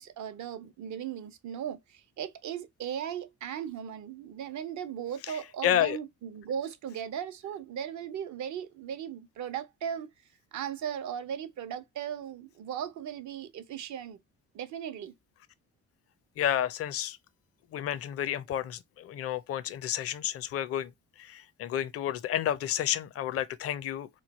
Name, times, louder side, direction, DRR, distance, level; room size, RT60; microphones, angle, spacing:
voice 1, 0.0-10.1 10.5-14.2 14.5-15.1, right 9 dB, 70° right, 0.7 m, -37 dB
voice 2, 5.6-6.0 16.4-17.2 17.7-20.9 21.2-24.1, left 10 dB, 50° left, 0.5 m, -30 dB
3.1 x 2.2 x 4.0 m
cardioid pair, 90°, 30 cm